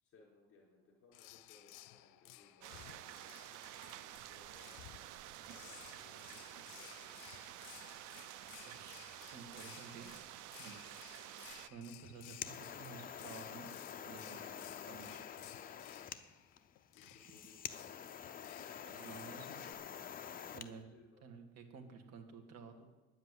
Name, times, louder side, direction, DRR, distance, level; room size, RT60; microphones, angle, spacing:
voice 1, 0.0-3.5 3.8-7.5 10.6-10.9 16.0-16.3 16.9-17.8 20.4-21.4, left 3 dB, 50° left, -4 dB, 4.7 m, -66 dB
sound 1, 1.1-19.7, left 16 dB, 90° left, 0.6 m, -58 dB
sound 2, 2.6-11.7, right 14 dB, 85° right, 0.6 m, -51 dB
voice 2, 8.6-9.0 9.2-10.1 10.6-11.1 11.7-13.7 14.1-14.5 14.9-15.2 18.9-19.7 20.5-20.9 21.2-22.9, right 5 dB, 60° right, 4 dB, 2.0 m, -52 dB
sound 3, 11.9-20.7, left 8 dB, 30° left, 0.6 m, -47 dB
10.0 x 8.0 x 9.5 m, 1.1 s
cardioid pair, 155°, 30 cm